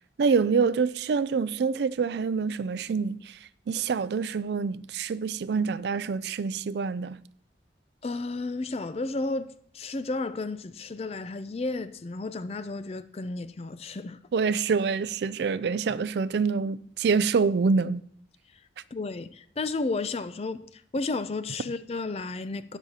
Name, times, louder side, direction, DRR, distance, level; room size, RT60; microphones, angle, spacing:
voice 1, 0.2-3.4 3.7-7.2 14.3-18.0, right 5 dB, 65° right, 0.4 m, -26 dB
voice 2, 8.0-14.2 18.9-22.8, left 3 dB, 35° left, 0.4 m, -32 dB
17.5 x 6.2 x 2.9 m
head